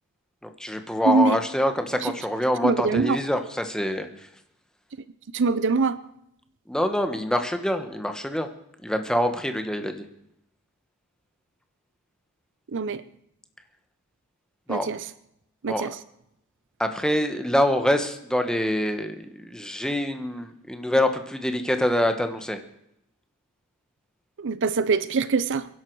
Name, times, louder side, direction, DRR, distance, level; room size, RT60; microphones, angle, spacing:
voice 1, 0.4-4.1 6.7-8.5 8.8-10.1 14.7-14.9 15.7-15.9 16.8-22.6, left 1 dB, 5° left, 7 dB, 1.2 m, -25 dB
voice 2, 2.6-3.2 5.3-6.0 12.7-13.0 14.7-15.0 15.6-15.9 24.4-25.7, right 4 dB, 55° right, 15 dB, 0.6 m, -23 dB
23.0 x 11.5 x 4.7 m, 0.77 s
head